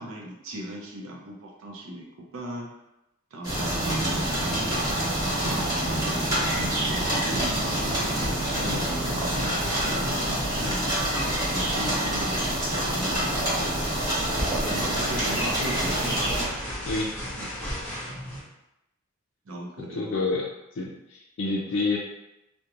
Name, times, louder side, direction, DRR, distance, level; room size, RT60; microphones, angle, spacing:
voice 1, 0.0-2.7 3.3-6.2 6.5-7.6 8.5-9.0 9.3-11.0 11.5-13.6 14.5-17.5 18.1-18.2 19.4-20.2, right 1 dB, 90° right, -1 dB, 0.6 m, -38 dB
sound 1, 3.4-16.4, right 1 dB, 20° right, 1.0 m, -26 dB
sound 2, 7.5-18.4, equal, 10° left, 0.9 m, -38 dB
voice 2, 16.8-17.2 20.0-20.5 20.8-22.0, left 3 dB, 65° left, -3 dB, 0.4 m, -28 dB
2.4 x 2.1 x 2.9 m, 0.90 s
head